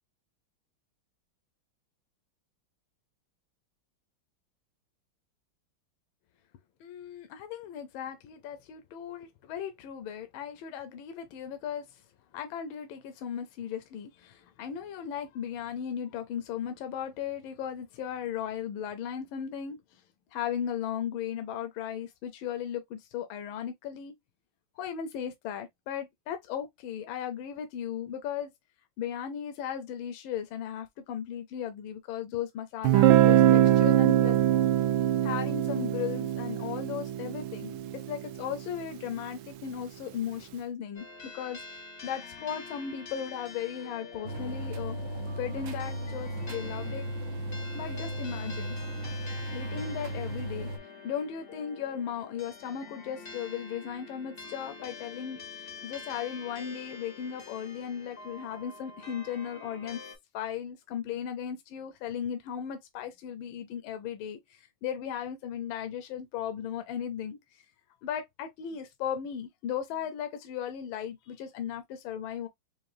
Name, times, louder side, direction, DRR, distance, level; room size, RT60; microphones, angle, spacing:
voice 1, 6.8-12.0 12.3-19.8 20.3-24.1 24.8-28.5 29.0-34.4 35.2-41.1 41.3-45.0 45.4-47.1 47.7-48.8 49.5-50.7 51.0-60.0 60.3-67.6 68.0-72.5, left 9 dB, 80° left, 1.4 m, -36 dB
Guitar, 32.8-38.6, right 12 dB, 80° right, 1.3 m, -23 dB
sound 1, 40.9-60.1, left 4 dB, 55° left, 0.6 m, -46 dB
sound 2, 44.2-50.8, right 1 dB, 65° right, 1.2 m, -36 dB
4.8 x 2.5 x 2.5 m
omnidirectional pair, 2.2 m